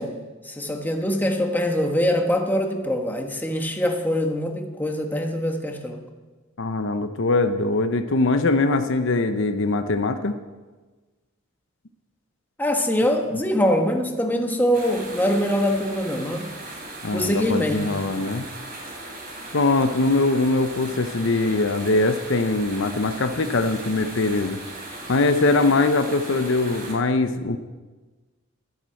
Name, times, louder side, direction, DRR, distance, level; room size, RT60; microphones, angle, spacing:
voice 1, 0.0-6.0 12.6-16.5 17.1-17.9, equal, 10° left, 2 dB, 1.4 m, -23 dB
voice 2, 6.6-10.3 17.0-18.4 19.5-24.6 25.1-27.6, left 2 dB, 65° left, 8 dB, 0.8 m, -22 dB
sound 1, 14.7-26.9, right 2 dB, 45° right, 3.6 m, -38 dB
12.5 x 10.5 x 7.7 m, 1.3 s
head